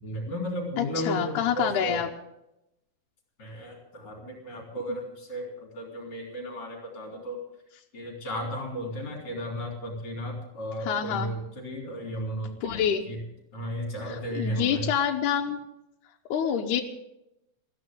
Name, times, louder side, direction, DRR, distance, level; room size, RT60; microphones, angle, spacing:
voice 1, 0.0-2.0 3.4-7.4 7.9-13.2 13.5-14.9, equal, 35° left, -1 dB, 4.0 m, -34 dB
voice 2, 0.8-2.1 10.9-11.3 12.6-13.1 14.1-15.6 16.3-16.8, left 8 dB, 85° left, 1 dB, 2.3 m, -27 dB
20.0 x 14.0 x 3.7 m, 0.86 s
omnidirectional pair, 3.5 m